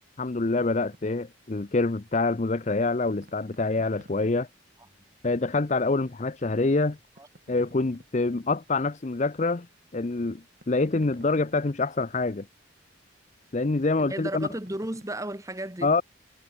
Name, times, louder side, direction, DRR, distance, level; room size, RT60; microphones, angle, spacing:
voice 1, 0.2-4.5 5.2-7.0 7.5-9.7 9.9-12.5 13.5-14.5 15.8-16.0, left 3 dB, 35° left, 0.6 m, -26 dB
sound 1, 0.9-1.2 3.1-4.6 6.9-8.3 10.6-11.9 14.4-15.3, right 1 dB, 50° right, 5.4 m, -54 dB
voice 2, 14.0-15.9, right 1 dB, 15° right, 1.5 m, -34 dB
head